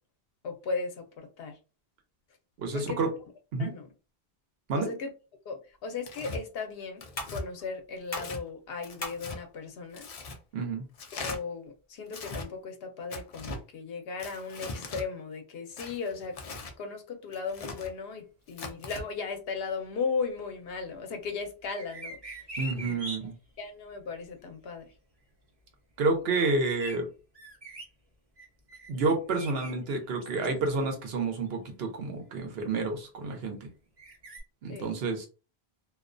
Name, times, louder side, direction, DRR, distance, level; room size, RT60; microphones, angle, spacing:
voice 1, 0.4-1.6 2.7-3.0 3.6-3.9 4.7-5.1 5.5-10.1 11.1-16.4 16.8-22.2 22.8-23.0 23.6-24.9 34.7-34.9, left 5 dB, 75° left, 6 dB, 0.8 m, -36 dB
voice 2, 2.6-3.1 3.5-3.7 4.7-4.9 10.5-10.9 22.6-23.3 26.0-27.1 28.9-33.6 34.6-35.3, right 3 dB, 75° right, 4 dB, 0.9 m, -29 dB
sound 1, 5.6-12.6, left 1 dB, 30° left, 0.7 m, -46 dB
Tearing, 6.0-6.4 7.0-7.4 8.1-8.4 8.8-9.4 9.9-10.4 11.0-11.4 12.1-12.5 13.1-13.6 14.2-15.1 15.8-16.8 17.3-17.9 18.5-19.0, left 3 dB, 55° left, 0.4 m, -39 dB
sound 2, 21.8-23.2 26.3-26.9 27.3-27.8 28.4-29.7 30.2-30.7 31.5-31.6 34.0-34.4, right 1 dB, 35° right, 0.8 m, -42 dB
2.3 x 2.1 x 2.5 m, 0.33 s
omnidirectional pair, 1.1 m